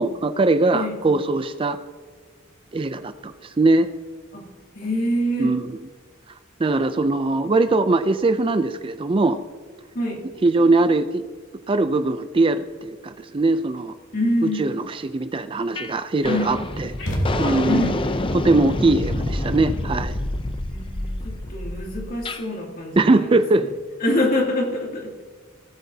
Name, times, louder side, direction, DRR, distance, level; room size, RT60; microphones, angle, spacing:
voice 1, 0.0-1.8 2.7-3.9 5.4-5.7 6.6-9.4 10.4-11.2 11.7-13.9 14.6-16.9 17.4-17.9 18.3-20.2 23.0-23.7, right 2 dB, 25° right, 10 dB, 0.4 m, -21 dB
voice 2, 4.7-5.6 9.9-10.2 14.1-14.7 16.2-16.6 17.6-18.3 20.6-23.7 24.0-25.1, left 1 dB, 45° left, -1 dB, 2.6 m, -25 dB
sound 1, 15.8-15.9 16.2-22.4, left 1 dB, 25° left, 0.6 m, -27 dB
sound 2, 17.0-18.0, equal, 65° left, 2.8 m, -26 dB
18.0 x 8.3 x 2.8 m, 1.5 s
head